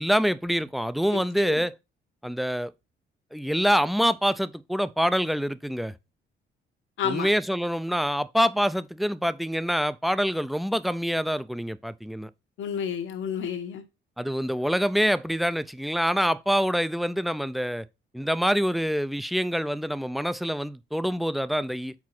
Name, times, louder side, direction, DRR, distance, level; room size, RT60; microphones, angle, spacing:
voice 1, 0.0-1.8 2.2-2.7 3.3-5.9 7.0-12.3 14.2-17.9 18.1-21.9, equal, ahead, 0.4 m, -26 dB
voice 2, 1.1-1.6 7.0-7.3 12.6-13.8, left 8 dB, 75° left, 1.2 m, -31 dB
4.8 x 4.7 x 5.8 m
cardioid pair, 90°, 20 cm